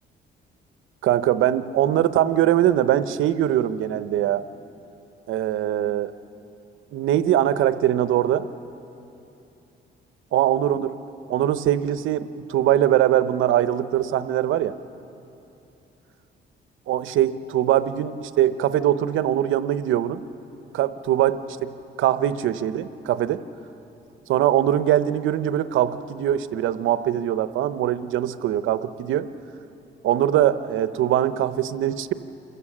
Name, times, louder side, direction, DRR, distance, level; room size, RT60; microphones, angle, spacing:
voice 1, 1.0-4.4 5.3-6.1 6.9-8.5 10.3-11.0 11.3-14.7 16.9-20.2 20.7-21.7 22.0-23.4 24.3-29.3 30.0-32.1, right 11 dB, 85° right, 13 dB, 0.8 m, -22 dB
27.5 x 15.0 x 7.4 m, 2.8 s
cardioid pair, 90°, 20 cm